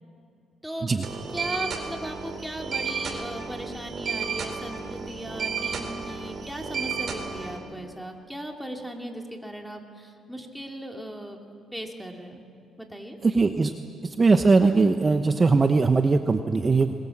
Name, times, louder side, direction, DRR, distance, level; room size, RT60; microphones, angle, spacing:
voice 1, 0.6-11.4 11.7-12.4 12.8-13.2, equal, ahead, 2 dB, 3.1 m, -37 dB
sound 1, 1.0-7.6, right 5 dB, 50° right, 4.2 m, -32 dB
voice 2, 13.2-13.7 14.2-16.9, right 4 dB, 30° right, 7 dB, 1.0 m, -20 dB
26.5 x 21.5 x 7.4 m, 2.4 s
cardioid pair, 90°, 0 cm